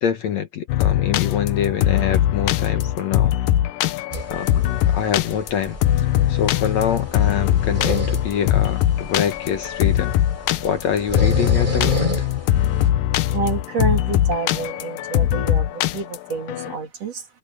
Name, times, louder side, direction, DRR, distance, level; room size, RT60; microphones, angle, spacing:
voice 1, 0.0-3.3 4.3-5.8 6.3-10.1 10.6-12.1, left 8 dB, 60° left, 2.2 m, -25 dB
sound 1, 0.7-16.7, left 12 dB, 85° left, 2.5 m, -21 dB
sound 2, 4.1-12.9, right 1 dB, 15° right, 8.1 m, -31 dB
voice 2, 13.3-17.3, right 4 dB, 50° right, 3.9 m, -28 dB
omnidirectional pair, 3.8 m